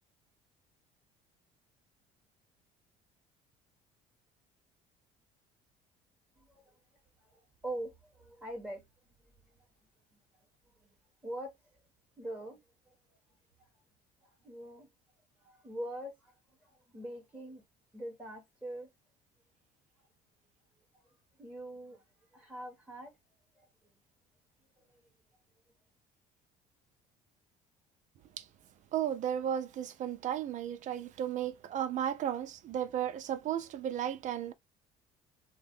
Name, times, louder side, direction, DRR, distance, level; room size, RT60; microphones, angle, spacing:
voice 1, 6.3-6.8 7.2-8.8 9.5-9.6 11.2-11.5 12.2-12.6 14.2-14.9 15.4-16.3 16.6-17.6 17.9-18.9 21.4-22.0 22.3-23.1 23.6-23.7 24.9-25.0, right 1 dB, 5° right, 1.5 m, -43 dB
voice 2, 28.9-34.5, right 10 dB, 50° right, 0.5 m, -34 dB
2.7 x 2.2 x 3.6 m
cardioid pair, 105°, 16 cm